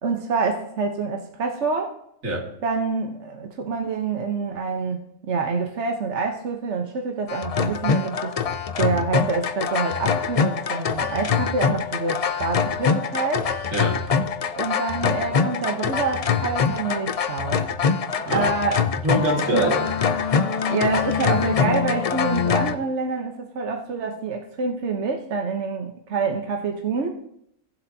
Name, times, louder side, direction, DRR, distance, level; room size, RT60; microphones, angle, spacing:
voice 1, 0.0-1.9 2.6-8.4 8.8-13.5 14.5-17.6 18.3-18.8 19.5-19.7 20.7-27.2, right 4 dB, 60° right, 3 dB, 1.2 m, -27 dB
sound 1, 7.3-22.8, left 6 dB, 70° left, 0.3 m, -24 dB
voice 2, 13.7-14.0 18.2-18.6 19.0-19.9 20.5-20.6, right 1 dB, 75° right, -1 dB, 2.5 m, -24 dB
17.5 x 7.7 x 2.7 m, 0.72 s
omnidirectional pair, 1.4 m